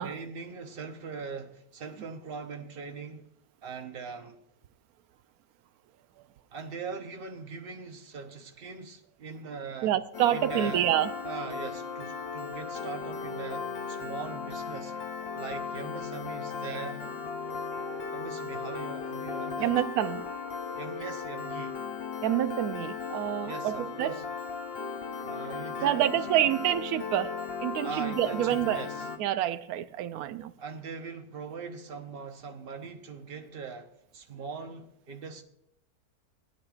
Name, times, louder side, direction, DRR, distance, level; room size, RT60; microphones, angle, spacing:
voice 1, 0.0-3.3 3.6-4.4 6.5-9.9 10.3-10.9 11.2-15.0 15.3-17.0 18.1-19.7 20.8-21.8 23.4-24.2 25.2-26.5 27.8-29.1 30.6-33.9 34.1-35.4, right 5 dB, 45° right, 1.0 m, -41 dB
voice 2, 9.8-11.1 17.7-18.0 19.6-20.3 22.2-24.2 25.8-27.3 27.6-28.8 29.2-30.5, right 12 dB, 75° right, 1.0 m, -28 dB
Piano, 10.1-29.2, left 5 dB, 50° left, 0.9 m, -37 dB
17.5 x 9.6 x 2.4 m
omnidirectional pair, 1.6 m